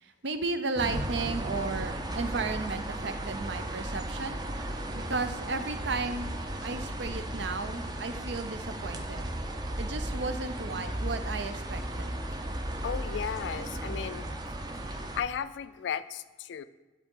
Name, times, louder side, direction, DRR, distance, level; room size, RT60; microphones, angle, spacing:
voice 1, 0.0-4.4 4.9-6.3 6.6-9.3 9.8-12.2, right 3 dB, 70° right, 9 dB, 0.6 m, -34 dB
sound 1, 0.7-15.2, right 1 dB, 25° right, 0.5 m, -35 dB
voice 2, 12.8-14.3 14.9-16.6, left 8 dB, 70° left, 14 dB, 0.3 m, -35 dB
10.5 x 4.1 x 3.7 m, 1.2 s
head